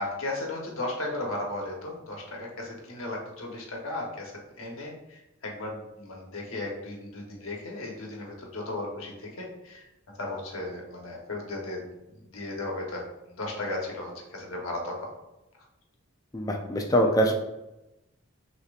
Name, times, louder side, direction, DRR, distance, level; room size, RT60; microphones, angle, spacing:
voice 1, 0.0-9.9 10.2-11.9 12.2-15.1, left 2 dB, 80° left, -1 dB, 1.1 m, -35 dB
voice 2, 16.3-17.3, equal, 15° left, 2 dB, 0.4 m, -23 dB
6.5 x 2.9 x 2.4 m, 0.97 s
head